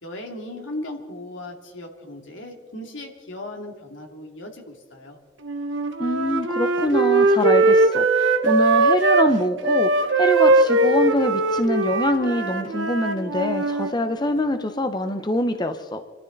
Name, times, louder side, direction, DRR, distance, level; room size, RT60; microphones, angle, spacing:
voice 1, 0.0-5.2, left 1 dB, 80° left, 2 dB, 2.7 m, -37 dB
Wind instrument woodwind instrument, 5.4-9.3 9.6-13.9, right 3 dB, 80° right, 1.3 m, -20 dB
voice 2, 6.0-16.1, left 1 dB, 20° left, 8 dB, 0.7 m, -24 dB
27.5 x 13.0 x 4.0 m, 1.4 s
head